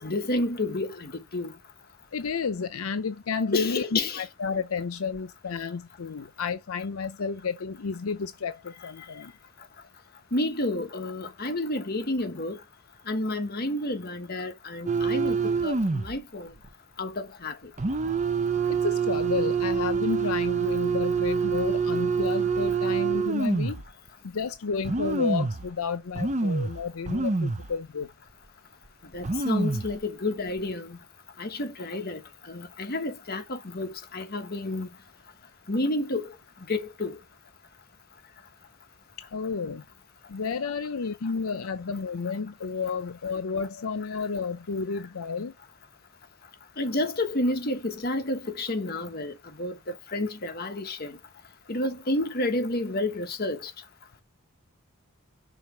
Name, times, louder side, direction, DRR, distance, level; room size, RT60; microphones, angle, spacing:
voice 1, 0.0-1.5 3.5-4.2 10.3-12.6 13.1-16.5 17.0-17.6 29.1-31.0 31.4-34.9 35.7-36.3 36.7-37.2 46.8-51.2 51.7-53.7, left 2 dB, 45° left, 1.4 m, -30 dB
voice 2, 2.1-9.3 18.7-23.8 24.2-28.1 39.3-39.8 40.3-45.5, left 5 dB, 85° left, 0.6 m, -31 dB
sound 1, 14.9-16.2 16.6-16.7 17.8-23.9 24.4-24.5 24.8-25.7 26.1-27.7 28.0-28.1 28.9-29.0 29.1-30.0 30.5-30.7, right 5 dB, 35° right, 0.7 m, -26 dB
6.2 x 4.0 x 5.9 m
head